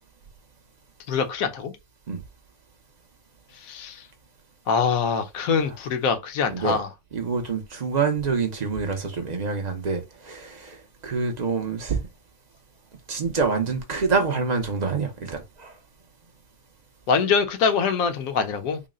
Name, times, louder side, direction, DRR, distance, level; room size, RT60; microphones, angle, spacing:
voice 1, 1.1-1.7 3.6-4.0 4.7-6.9 17.1-18.8, left 5 dB, 70° left, 1.1 m, -24 dB
voice 2, 6.5-6.8 7.1-12.1 13.1-15.8, right 4 dB, 45° right, 0.6 m, -26 dB
3.9 x 2.1 x 3.6 m
omnidirectional pair, 1.6 m